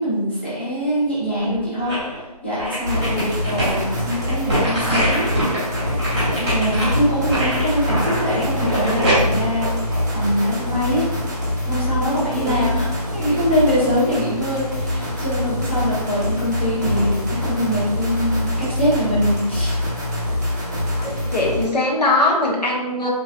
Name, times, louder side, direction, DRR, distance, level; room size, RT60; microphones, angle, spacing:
voice 1, 0.0-2.0 2.4-5.3 6.4-9.7 10.1-11.1 11.6-19.8, equal, 15° left, -9 dB, 0.5 m, -23 dB
sound 1, 1.3-2.2 2.6-10.6 11.1-11.2, equal, 10° right, 1.1 m, -23 dB
sound 2, 2.8-21.6, left 1 dB, 25° right, 0.5 m, -25 dB
voice 2, 3.0-3.4 12.3-12.6 21.0-23.1, left 2 dB, 85° left, -1 dB, 0.9 m, -21 dB
3.1 x 2.4 x 2.5 m, 1.1 s
figure-of-eight pair, 170°, 21 cm